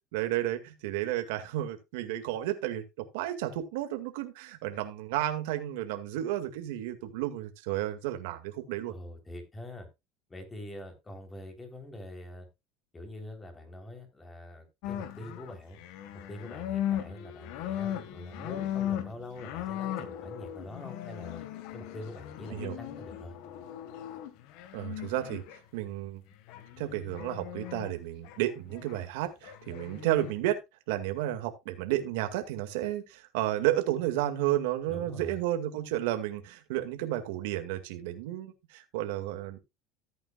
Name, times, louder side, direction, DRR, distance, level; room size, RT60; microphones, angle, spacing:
voice 1, 0.1-8.9 22.5-22.8 24.7-25.4 25.7-26.2 26.8-30.6 30.9-39.6, right 14 dB, 85° right, 7 dB, 2.0 m, -32 dB
voice 2, 8.9-9.9 10.3-12.5 12.9-15.8 16.3-21.4 21.7-23.4 34.9-35.4, left 1 dB, 15° left, 5 dB, 3.5 m, -44 dB
sound 1, 14.8-25.6 26.5-27.9 28.2-29.1 29.4-30.3, left 11 dB, 65° left, 1.6 m, -38 dB
14.5 x 8.9 x 2.4 m, 0.23 s
supercardioid pair, 135°, 0 cm